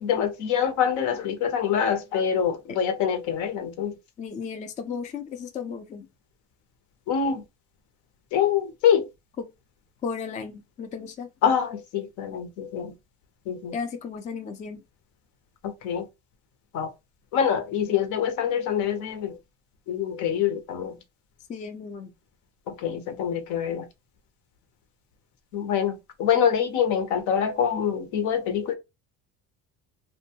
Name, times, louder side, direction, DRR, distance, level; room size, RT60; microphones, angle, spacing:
voice 1, 0.0-3.9 7.1-7.4 8.3-9.1 11.4-12.9 13.5-13.7 15.6-16.0 16.7-16.9 17.3-19.4 19.9-21.0 22.7-23.9 25.5-28.8, left 8 dB, 70° left, 0.7 m, -25 dB
voice 2, 4.2-6.1 10.0-11.3 13.7-14.8 21.5-22.1, left 6 dB, 25° left, 0.4 m, -34 dB
2.5 x 2.2 x 2.8 m
cardioid pair, 140°, 31 cm